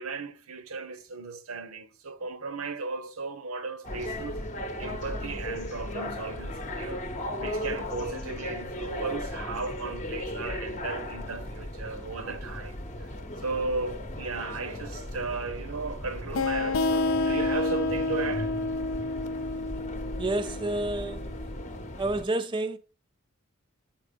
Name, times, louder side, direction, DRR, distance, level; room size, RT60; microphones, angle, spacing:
voice 1, 0.0-4.4 4.8-7.0 7.4-13.1 13.4-18.5, right 4 dB, 85° right, 0.9 m, -36 dB
sound 1, 3.8-22.3, left 1 dB, 35° left, 0.8 m, -37 dB
sound 2, 16.3-21.7, left 3 dB, 75° left, 0.5 m, -29 dB
voice 2, 20.2-21.3 22.0-22.8, right 2 dB, 20° right, 0.4 m, -29 dB
7.3 x 4.4 x 5.2 m
head